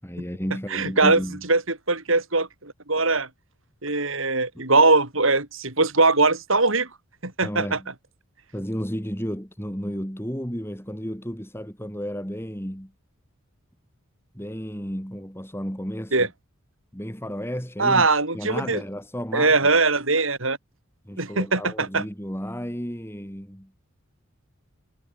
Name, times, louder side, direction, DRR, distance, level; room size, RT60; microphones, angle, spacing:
voice 1, 0.0-1.4 4.5-4.6 7.4-7.9 8.5-12.9 14.3-16.3 16.9-18.1 18.3-19.7 21.0-23.7, equal, 10° left, 7.9 m, -32 dB
voice 2, 0.7-1.2 1.5-3.3 3.8-6.9 7.2-7.8 16.1-16.3 17.8-18.8 19.3-20.6 21.2-22.0, right 3 dB, 65° right, 5.2 m, -21 dB
head